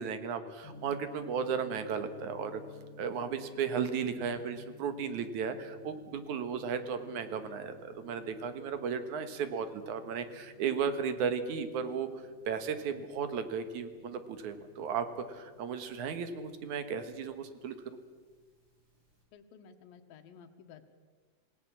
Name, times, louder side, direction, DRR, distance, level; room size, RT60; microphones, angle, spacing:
voice 1, 0.0-2.6 3.0-12.1 12.5-18.0, right 6 dB, 65° right, 9 dB, 2.6 m, -35 dB
Gong, 0.6-19.2, left 3 dB, 25° right, 5.2 m, -55 dB
voice 2, 19.3-20.8, left 7 dB, 80° left, 4 dB, 3.2 m, -54 dB
27.5 x 18.0 x 7.5 m, 1.5 s
omnidirectional pair, 4.1 m